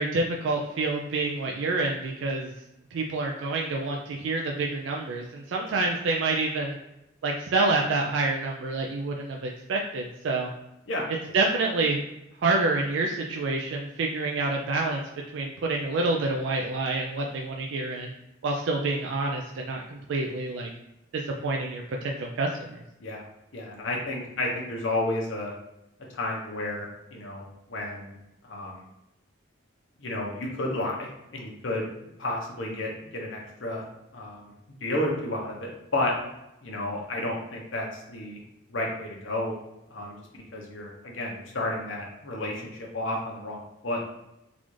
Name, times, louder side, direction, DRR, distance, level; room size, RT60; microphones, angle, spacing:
voice 1, 0.0-2.5 2.9-6.8 7.2-10.5 11.3-12.0 12.4-15.0 15.3-18.1 18.4-20.7 21.1-22.8, right 3 dB, 70° right, 0 dB, 0.3 m, -27 dB
voice 2, 23.5-25.5 26.1-28.1 28.4-28.8 30.0-31.9 32.2-33.8 34.1-34.5 34.8-36.1 36.6-38.4 38.7-39.6 39.9-44.0, left 1 dB, 70° left, -2 dB, 0.7 m, -32 dB
3.9 x 2.4 x 3.1 m, 0.88 s
head